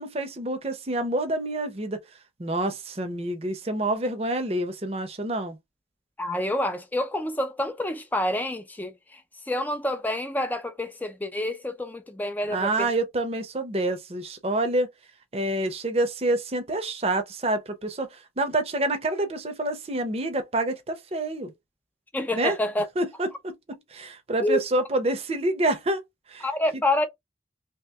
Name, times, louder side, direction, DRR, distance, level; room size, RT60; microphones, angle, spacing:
voice 1, 0.0-2.0 2.4-5.6 12.5-14.9 15.3-21.5 22.3-22.6 23.0-26.0 26.3-26.4, right 2 dB, 35° right, 0.7 m, -27 dB
voice 2, 6.2-12.9 22.1-22.9 24.4-24.6 26.4-27.1, left 1 dB, 10° left, 0.4 m, -28 dB
2.9 x 2.9 x 3.4 m
head